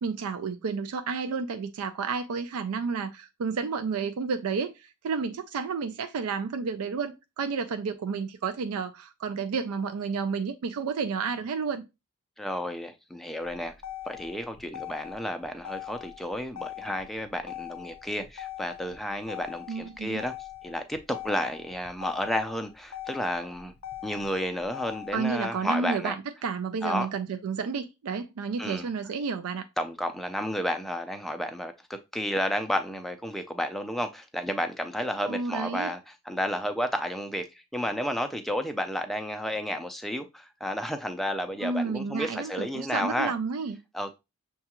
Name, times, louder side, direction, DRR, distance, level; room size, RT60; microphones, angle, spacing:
voice 1, 0.0-11.8 19.7-20.2 25.1-26.2 26.4-29.7 35.3-35.9 41.6-43.8, right 5 dB, 85° right, 0.4 m, -31 dB
voice 2, 12.4-13.7 14.1-20.3 20.6-23.7 24.0-26.2 26.8-27.1 28.6-28.9 29.8-31.7 32.1-43.3 43.9-44.2, equal, ahead, 0.4 m, -31 dB
Motor vehicle (road), 13.4-25.4, left 13 dB, 80° left, 0.6 m, -42 dB
6.4 x 2.3 x 2.9 m
head